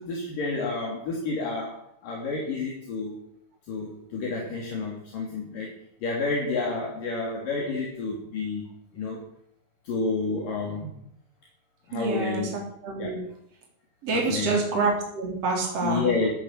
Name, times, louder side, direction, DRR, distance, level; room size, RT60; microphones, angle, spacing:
voice 1, 0.0-3.2 3.7-5.7 6.0-8.6 8.9-9.2 9.8-11.0 11.9-12.5 13.0-13.1 14.1-14.6 15.6-16.3, left 3 dB, 60° left, -2 dB, 4.6 m, -30 dB
voice 2, 11.9-13.2 14.0-16.1, right 3 dB, 40° right, 0 dB, 4.6 m, -27 dB
14.5 x 10.5 x 8.8 m, 0.69 s
omnidirectional pair, 4.5 m